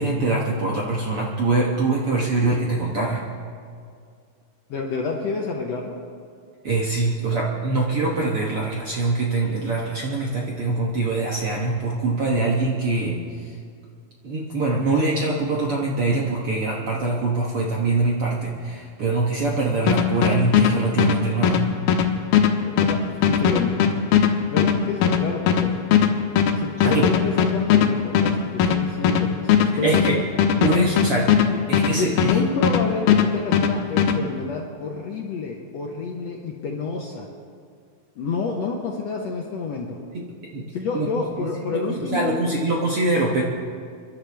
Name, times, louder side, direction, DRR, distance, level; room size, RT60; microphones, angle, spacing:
voice 1, 0.0-3.2 6.6-13.2 14.2-21.7 26.8-27.1 29.8-30.2 30.6-31.3 31.7-32.4 40.1-40.2 40.5-40.7 40.9-41.1 41.4-43.4, right 3 dB, 60° right, -3 dB, 1.5 m, -23 dB
voice 2, 4.7-6.0 22.6-23.0 23.3-23.7 24.5-25.7 26.6-30.3 31.5-31.6 31.9-37.3 38.2-40.0 40.7-42.4, left 4 dB, 65° left, 0 dB, 1.7 m, -28 dB
sound 1, 19.9-32.8 33.1-34.2, left 8 dB, 80° left, 2.8 m, -19 dB
30.0 x 11.5 x 3.4 m, 2.2 s
omnidirectional pair, 4.1 m